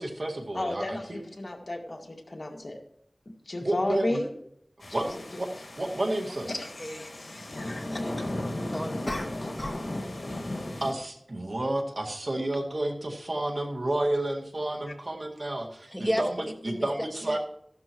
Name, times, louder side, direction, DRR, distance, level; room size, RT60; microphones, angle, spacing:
voice 1, 0.0-1.2 3.6-4.2 4.9-5.5 5.8-6.5 10.8-16.4 16.6-17.4, right 1 dB, 60° right, 1 dB, 2.0 m, -30 dB
voice 2, 0.5-2.8 3.5-4.3 5.1-5.2 6.5-8.3, left 1 dB, 60° left, 1 dB, 2.1 m, -34 dB
sound 1, 4.8-10.9, left 1 dB, 80° left, 1.9 m, -36 dB
voice 3, 8.0-8.4 8.7-9.7 15.9-16.2 16.6-16.9 17.2-17.4, equal, ahead, 3 dB, 1.8 m, -34 dB
sound 2, 9.1-9.9 10.2-10.5, left 1 dB, 30° left, 2.2 m, -36 dB
15.0 x 11.5 x 3.1 m, 0.72 s
wide cardioid pair, 60°, 0 cm